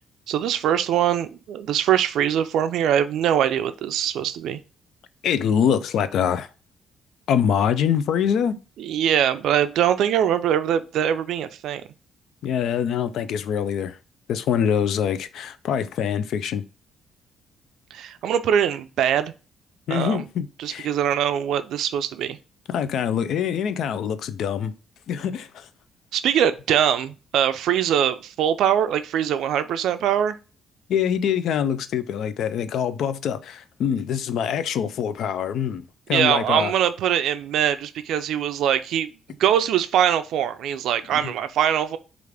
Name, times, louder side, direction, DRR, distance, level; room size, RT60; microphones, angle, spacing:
voice 1, 0.3-4.6 8.8-11.8 17.9-19.3 19.9-20.2 20.6-22.4 26.1-30.4 36.1-39.1 39.4-42.0, right 9 dB, 80° right, 0.3 m, -22 dB
voice 2, 5.2-6.5 7.3-8.6 12.4-14.0 14.3-16.6 19.9-20.9 22.7-24.7 25.1-25.7 30.9-36.7 41.2-41.3, left 8 dB, 75° left, 0.4 m, -24 dB
4.8 x 2.5 x 3.3 m
cardioid pair, 90°, 0 cm